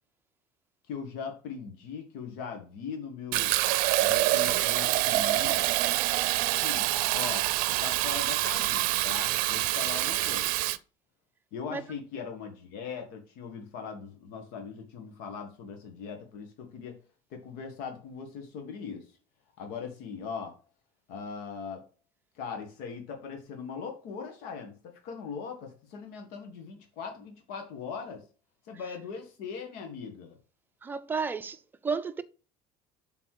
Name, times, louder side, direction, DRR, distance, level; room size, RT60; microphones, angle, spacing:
voice 1, 0.9-3.5 4.0-5.7 6.5-6.8 7.1-10.5 11.5-17.0 17.3-19.1 19.6-20.5 21.1-21.8 22.3-28.2 28.6-30.4, left 6 dB, 80° left, 1.5 m, -40 dB
Fill (with liquid), 3.3-10.8, right 17 dB, 70° right, 0.5 m, -26 dB
voice 2, 30.8-32.2, right 5 dB, 15° right, 0.5 m, -32 dB
7.5 x 4.1 x 4.7 m
cardioid pair, 160°, 15 cm